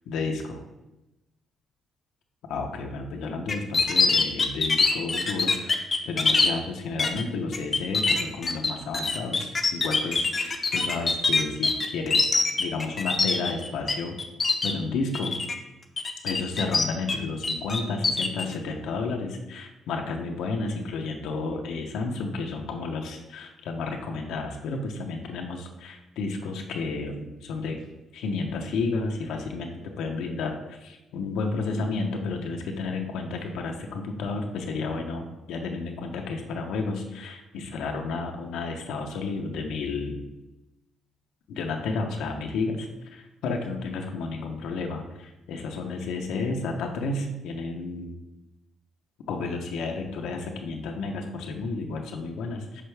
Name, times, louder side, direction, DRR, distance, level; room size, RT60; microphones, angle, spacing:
voice 1, 0.1-0.6 2.4-12.3 12.6-14.1 14.6-15.4 16.2-27.9 28.1-29.7 30.0-40.2 41.5-48.1 49.3-52.8, left 3 dB, 85° left, 2 dB, 0.7 m, -32 dB
sound 1, 3.5-6.5 7.0-7.2 7.5-13.9 14.2-14.7 15.1-15.5 16.0-17.2 17.4-18.4, left 4 dB, 35° left, 0.7 m, -23 dB
5.7 x 5.2 x 3.3 m, 0.99 s
cardioid pair, 90°, 0 cm